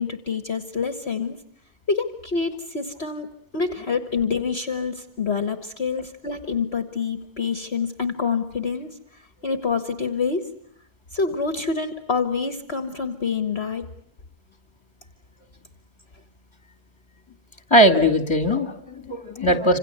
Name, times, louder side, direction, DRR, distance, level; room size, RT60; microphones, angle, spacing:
voice 1, 0.0-1.4 1.9-3.3 3.5-8.9 9.4-10.4 11.1-13.8, left 5 dB, 45° left, 9 dB, 1.6 m, -26 dB
voice 2, 17.7-19.8, equal, 15° left, 9 dB, 2.3 m, -19 dB
27.5 x 27.0 x 8.0 m, 0.65 s
omnidirectional pair, 1.7 m